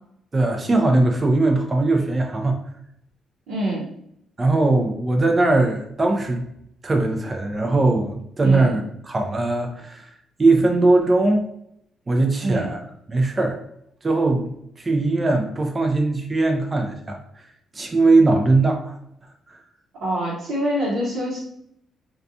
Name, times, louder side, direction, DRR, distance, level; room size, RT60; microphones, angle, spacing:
voice 1, 0.3-2.6 4.4-6.4 6.8-10.1 10.4-11.5 12.1-12.8 13.1-13.6 14.0-14.5 14.8-17.5 17.7-18.9 19.5-19.6, right 2 dB, 25° right, 2 dB, 0.4 m, -20 dB
voice 2, 3.5-3.9 8.4-8.7 12.4-12.7 19.9-21.4, right 1 dB, 85° right, -8 dB, 0.8 m, -25 dB
2.4 x 2.2 x 2.6 m, 0.73 s
cardioid pair, 90°, 0 cm